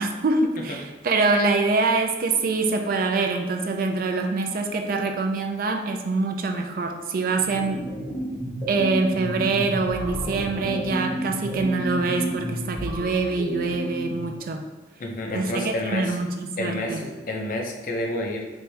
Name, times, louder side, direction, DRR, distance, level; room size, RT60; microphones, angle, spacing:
voice 1, 0.0-7.8 8.7-14.7 15.3-17.0, right 3 dB, 55° right, 4 dB, 0.4 m, -25 dB
sound 1, 7.3-14.4, equal, 20° left, 1.2 m, -31 dB
voice 2, 15.0-16.2 16.6-18.4, left 1 dB, 50° left, 2 dB, 0.6 m, -29 dB
4.5 x 2.6 x 3.3 m, 1.2 s
head